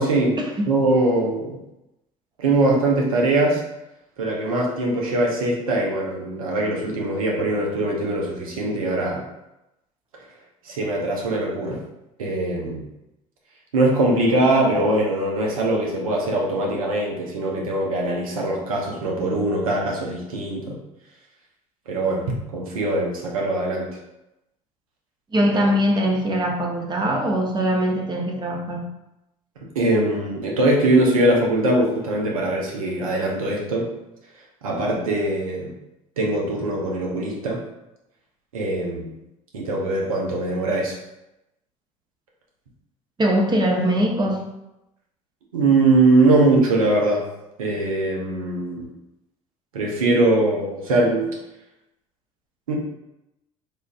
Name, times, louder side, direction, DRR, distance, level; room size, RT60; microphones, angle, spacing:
voice 1, 0.0-0.3 0.7-1.6 2.4-3.6 4.2-9.2 10.7-11.8 12.2-12.8 13.7-20.8 21.9-22.2 22.5-23.9 29.7-33.9 34.6-35.7 36.2-37.6 38.5-39.1 39.5-40.9 45.5-47.2 47.6-48.9 49.7-51.3 52.7-52.8, right 2 dB, 90° right, -2 dB, 0.7 m, -21 dB
voice 2, 25.3-28.8 43.2-44.4, equal, 25° right, 0 dB, 0.8 m, -21 dB
3.6 x 2.5 x 2.6 m, 0.91 s
hypercardioid pair, 65°, 17 cm